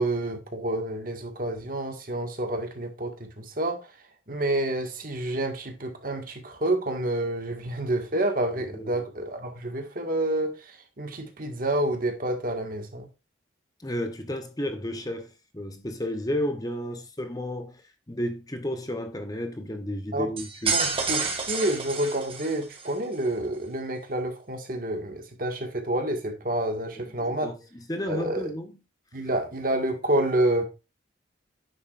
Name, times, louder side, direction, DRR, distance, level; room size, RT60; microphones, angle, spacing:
voice 1, 0.0-3.8 4.3-13.1 20.1-20.3 20.7-27.5 28.1-28.5 29.1-30.6, right 1 dB, 45° right, 1.8 m, -28 dB
voice 2, 8.7-9.0 13.8-17.8 18.1-20.8 26.9-28.8, left 1 dB, 20° left, 0.8 m, -32 dB
sound 1, 20.4-22.9, right 5 dB, 30° right, 2.0 m, -29 dB
9.9 x 7.3 x 2.5 m
head